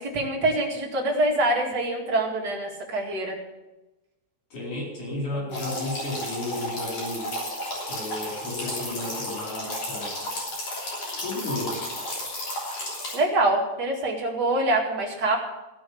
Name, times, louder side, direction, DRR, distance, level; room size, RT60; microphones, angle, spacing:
voice 1, 0.0-3.4 5.3-5.7 13.1-15.4, right 2 dB, 35° right, -1 dB, 2.5 m, -25 dB
voice 2, 4.5-7.3 7.9-10.1 11.2-11.8, left 2 dB, 85° left, -3 dB, 6.0 m, -33 dB
sound 1, 5.5-13.2, left 1 dB, 50° left, 4.4 m, -33 dB
15.0 x 6.3 x 8.5 m, 1.1 s
omnidirectional pair, 3.4 m